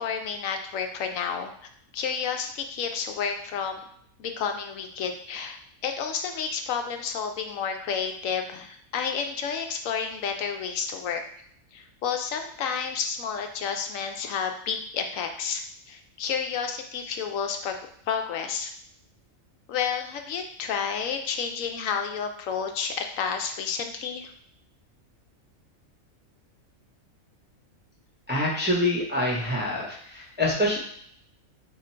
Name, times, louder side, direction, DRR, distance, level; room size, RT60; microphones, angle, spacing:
voice 1, 0.0-1.5 1.9-3.8 4.2-11.2 11.7-17.8 18.1-18.7 19.7-24.3, left 6 dB, 75° left, 5 dB, 0.9 m, -30 dB
voice 2, 28.3-30.8, left 1 dB, 10° right, -4 dB, 0.6 m, -26 dB
3.8 x 2.8 x 4.3 m, 0.66 s
omnidirectional pair, 1.4 m